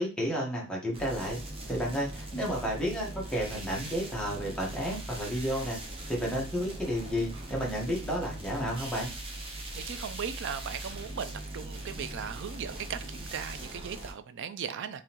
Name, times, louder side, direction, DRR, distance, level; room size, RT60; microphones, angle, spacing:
voice 1, 0.0-1.4 1.7-5.8 6.1-9.1, equal, 5° left, -3 dB, 1.2 m, -31 dB
sound 1, 0.9-14.1, right 1 dB, 25° right, 0.8 m, -40 dB
voice 2, 9.7-15.0, right 7 dB, 60° right, 12 dB, 0.4 m, -38 dB
3.7 x 3.1 x 2.9 m, 0.32 s
head